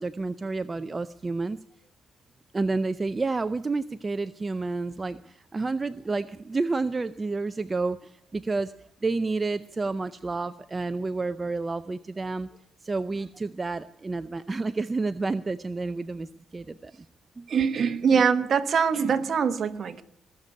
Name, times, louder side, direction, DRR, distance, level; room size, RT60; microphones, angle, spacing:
voice 1, 0.0-1.6 2.5-8.7 9.0-12.5 12.8-16.9 17.4-17.5, right 3 dB, 25° right, 11 dB, 0.5 m, -30 dB
voice 2, 17.5-20.0, right 6 dB, 55° right, 10 dB, 1.2 m, -23 dB
20.5 x 6.8 x 8.3 m, 0.70 s
cardioid pair, 90°, 0 cm